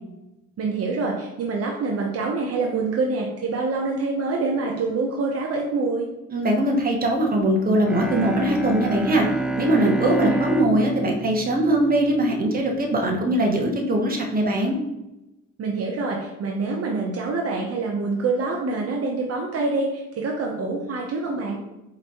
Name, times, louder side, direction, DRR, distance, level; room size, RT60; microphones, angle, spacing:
voice 1, 0.6-6.1 9.8-10.4 15.6-21.6, right 3 dB, 50° right, -1 dB, 0.8 m, -26 dB
voice 2, 6.3-9.3 9.6-14.8, right 1 dB, 30° right, 1 dB, 1.0 m, -21 dB
Bowed string instrument, 7.8-12.7, right 2 dB, 5° right, 0.4 m, -29 dB
4.4 x 3.9 x 2.9 m, 0.96 s
cardioid pair, 90°, 30 cm